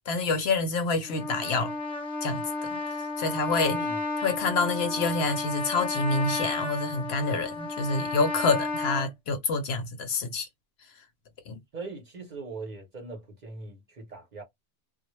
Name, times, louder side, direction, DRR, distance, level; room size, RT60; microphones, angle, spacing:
voice 1, 0.1-1.7 2.2-2.4 3.2-3.8 4.2-10.5 11.5-11.6, left 3 dB, 65° left, 0.7 m, -27 dB
Trumpet, 1.1-9.1, left 3 dB, ahead, 0.7 m, -32 dB
voice 2, 3.7-4.0 11.7-14.4, right 3 dB, 45° right, 0.8 m, -40 dB
2.0 x 2.0 x 3.0 m
omnidirectional pair, 1.2 m